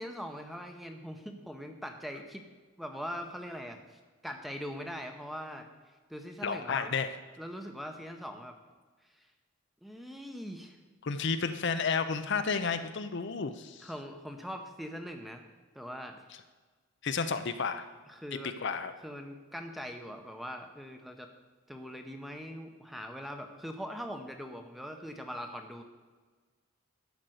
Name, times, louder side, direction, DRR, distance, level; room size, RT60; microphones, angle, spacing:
voice 1, 0.0-2.4 2.8-3.8 4.2-5.7 6.1-6.9 7.4-8.5 9.1-9.3 9.8-10.8 13.8-15.4 15.7-16.2 18.1-18.6 19.0-21.3 21.7-25.8, equal, ahead, 5 dB, 0.8 m, -41 dB
voice 2, 6.4-7.1 11.0-13.9 17.0-17.8 18.6-18.9, left 5 dB, 55° left, 9 dB, 0.6 m, -31 dB
12.0 x 5.1 x 7.9 m, 1.4 s
head